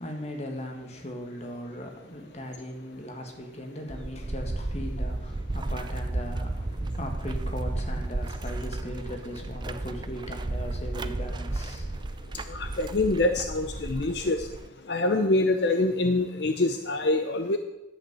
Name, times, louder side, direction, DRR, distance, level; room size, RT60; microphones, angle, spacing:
voice 1, 0.0-11.9, equal, 35° left, 3 dB, 1.7 m, -38 dB
sound 1, 3.9-14.7, right 2 dB, 25° right, 0.4 m, -33 dB
voice 2, 12.5-14.5 14.9-17.6, left 2 dB, 70° left, 7 dB, 0.7 m, -25 dB
10.5 x 8.3 x 6.8 m, 0.95 s
head